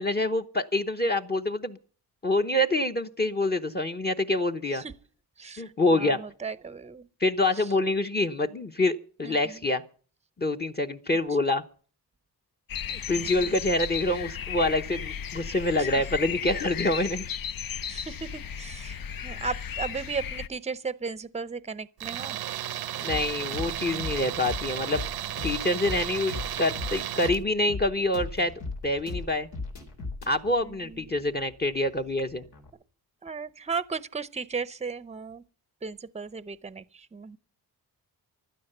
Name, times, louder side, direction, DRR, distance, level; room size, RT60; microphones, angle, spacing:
voice 1, 0.0-1.8 2.2-4.8 5.6-6.2 7.2-9.8 10.4-11.6 12.9-17.2 23.0-25.0 25.4-28.5 28.8-29.5 30.3-32.4, left 1 dB, 25° left, 0.9 m, -26 dB
voice 2, 5.4-7.1 7.5-7.7 9.2-9.6 13.1-13.6 15.8-15.9 17.9-22.4 30.6-31.1 33.2-35.4 35.8-37.4, right 5 dB, 15° right, 0.7 m, -36 dB
sound 1, 12.7-20.5, left 8 dB, 60° left, 0.7 m, -35 dB
Tools, 22.0-27.4, right 12 dB, 65° right, 0.7 m, -34 dB
sound 2, 23.1-32.7, left 3 dB, 85° left, 3.7 m, -38 dB
15.5 x 12.0 x 6.7 m
wide cardioid pair, 115°, 39 cm